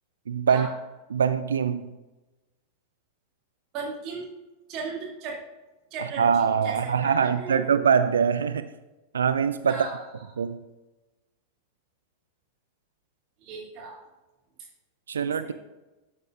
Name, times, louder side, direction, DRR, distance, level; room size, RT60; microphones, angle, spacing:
voice 1, 0.3-0.7 1.1-1.9 6.2-8.7 9.1-9.9 10.4-10.6 15.1-15.5, right 7 dB, 70° right, 12 dB, 0.3 m, -23 dB
voice 2, 3.7-4.3 4.7-5.4 5.9-7.7 9.7-10.1 13.4-14.0 15.2-15.5, right 4 dB, 40° right, -3 dB, 2.4 m, -36 dB
12.0 x 7.6 x 2.5 m, 1.1 s
figure-of-eight pair, 90°, 0 cm